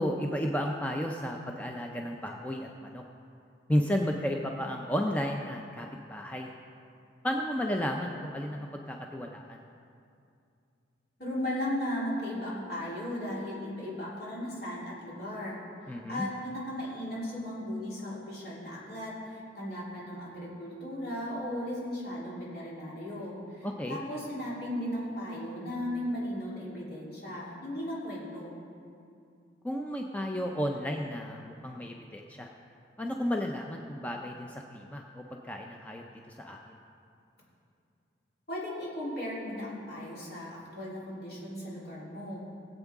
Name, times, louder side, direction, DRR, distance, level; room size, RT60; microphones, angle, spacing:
voice 1, 0.0-3.0 3.7-6.5 7.2-9.6 15.9-16.3 23.6-24.0 29.6-32.5 33.0-36.8, equal, 10° left, 1 dB, 0.5 m, -33 dB
voice 2, 11.2-15.6 16.1-28.6 38.5-42.4, left 1 dB, 60° left, -7 dB, 3.4 m, -36 dB
19.0 x 8.1 x 3.6 m, 2.4 s
head